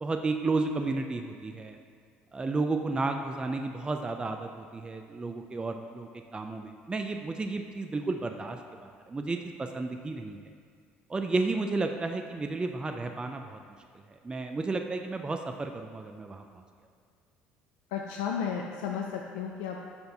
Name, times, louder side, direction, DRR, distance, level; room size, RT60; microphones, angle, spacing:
voice 1, 0.0-1.8 2.3-10.4 11.1-13.6 14.2-16.6, right 3 dB, 20° right, 5 dB, 0.4 m, -32 dB
voice 2, 17.9-19.9, left 7 dB, 85° left, 1 dB, 0.4 m, -33 dB
6.9 x 2.6 x 5.4 m, 2.1 s
supercardioid pair, 80°, 5 cm